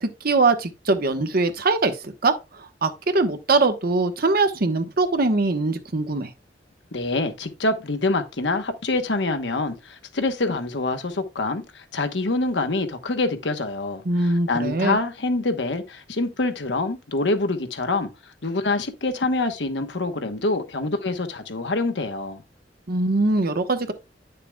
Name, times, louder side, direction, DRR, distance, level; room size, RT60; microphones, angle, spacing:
voice 1, 0.0-6.3 14.0-15.0 22.9-23.9, right 3 dB, 55° right, 1.1 m, -22 dB
voice 2, 6.9-18.1 18.4-22.4, left 2 dB, 70° left, 1.1 m, -26 dB
10.0 x 6.7 x 2.3 m
head